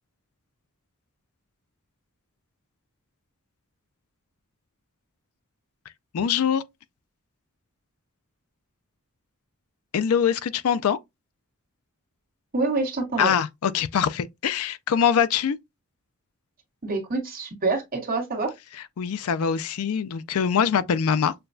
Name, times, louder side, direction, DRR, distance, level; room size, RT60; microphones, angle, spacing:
voice 1, 6.1-6.6 9.9-11.0 13.2-15.6 19.0-21.3, left 7 dB, 75° left, 0.4 m, -23 dB
voice 2, 12.5-13.3 16.8-18.5, right 3 dB, 40° right, 1.4 m, -26 dB
6.6 x 2.2 x 2.6 m
head